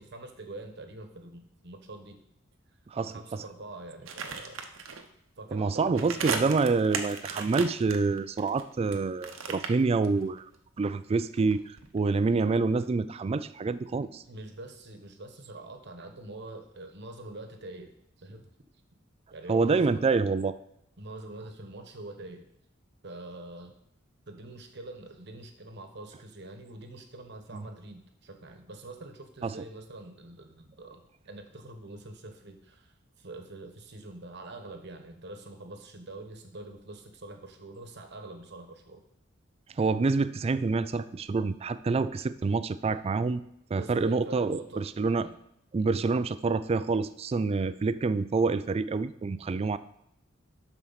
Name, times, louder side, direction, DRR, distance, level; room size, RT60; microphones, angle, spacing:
voice 1, 0.0-2.2 2.9-4.7 5.4-6.1 11.4-11.5 14.0-17.9 18.2-18.5 19.3-20.0 21.0-22.5 23.0-23.7 24.3-39.0 43.7-44.9 45.1-45.4 45.8-46.0, right 2 dB, 60° right, 6 dB, 1.1 m, -45 dB
sound 1, 4.1-5.0 5.9-9.0 9.2-10.6 10.8-12.5 12.7-12.8, right 5 dB, 85° right, 0.9 m, -36 dB
voice 2, 5.5-10.4 10.8-11.6 11.9-14.2 19.5-20.6 27.5-27.7 29.4-29.6 39.8-43.4 43.7-45.3 45.7-49.8, right 4 dB, 30° right, 13 dB, 0.3 m, -27 dB
12.0 x 4.5 x 4.1 m, 0.75 s
head